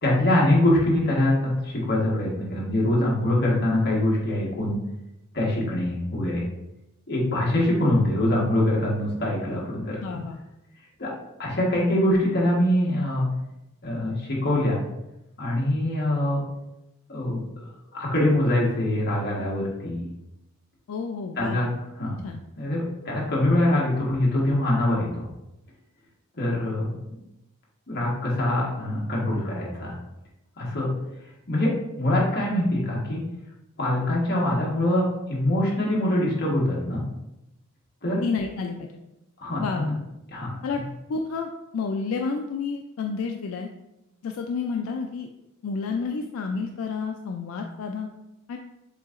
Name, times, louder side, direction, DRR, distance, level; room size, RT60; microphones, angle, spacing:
voice 1, 0.0-4.8 5.3-6.4 7.1-10.0 11.0-11.1 11.4-13.2 13.8-14.8 15.4-16.4 17.1-17.4 17.9-20.1 21.4-21.7 22.0-22.2 22.6-25.3 26.3-26.9 27.9-30.0 30.6-30.9 31.5-33.2 33.8-37.0 38.0-38.2 39.4-39.9 40.3-40.5, left 1 dB, 50° left, -4 dB, 1.3 m, -24 dB
voice 2, 10.0-10.4 20.9-21.7 22.2-22.4 38.2-38.9 39.6-39.9 40.6-40.8 41.1-43.7 44.2-45.3 45.6-48.1 48.5-48.6, left 4 dB, 80° left, 3 dB, 0.3 m, -30 dB
6.9 x 2.7 x 2.5 m, 0.90 s
head